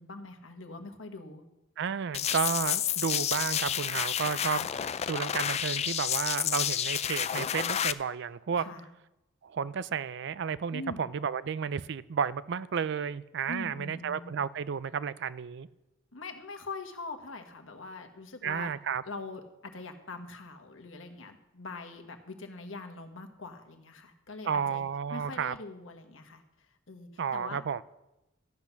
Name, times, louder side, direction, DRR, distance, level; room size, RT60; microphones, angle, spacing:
voice 1, 0.0-1.4 8.6-8.9 10.7-11.1 13.5-14.3 16.1-18.7 19.0-24.8 25.1-26.4 26.9-27.6, left 3 dB, 85° left, 1.4 m, -43 dB
voice 2, 1.8-8.7 9.4-15.7 18.4-19.0 24.4-25.5 27.2-27.8, right 7 dB, 65° right, 0.4 m, -32 dB
sound 1, 2.1-7.9, left 10 dB, 35° left, 0.4 m, -30 dB
13.5 x 8.2 x 5.8 m
head